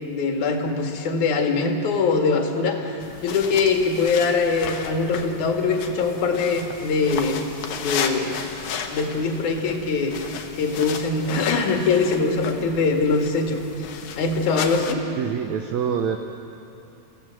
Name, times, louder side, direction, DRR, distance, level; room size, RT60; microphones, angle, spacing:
voice 1, 0.0-2.9 3.2-7.4 7.8-8.4 8.9-10.2 10.6-13.9 14.2-15.0, left 4 dB, 60° left, 2 dB, 3.2 m, -22 dB
sound 1, 3.0-14.9, left 6 dB, 85° left, 3.1 m, -34 dB
voice 2, 15.2-16.2, right 7 dB, 70° right, 6 dB, 1.8 m, -25 dB
29.0 x 16.0 x 7.6 m, 2.9 s
omnidirectional pair, 4.0 m